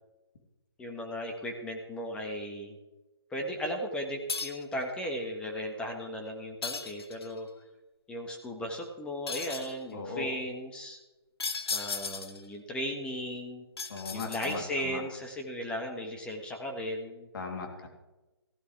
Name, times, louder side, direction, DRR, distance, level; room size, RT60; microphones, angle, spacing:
voice 1, 0.8-2.8 3.3-7.5 8.1-11.0 11.7-13.6 14.1-17.3, equal, 5° left, 2 dB, 1.5 m, -36 dB
sound 1, 4.3-4.7 6.6-7.4 9.3-9.8 11.4-12.5 13.8-14.8, left 4 dB, 75° left, 1.7 m, -36 dB
voice 2, 9.9-10.3 13.9-15.0 17.3-17.9, left 4 dB, 60° left, 2 dB, 3.2 m, -38 dB
16.0 x 12.0 x 3.4 m, 1.1 s
hypercardioid pair, 150°, 13 cm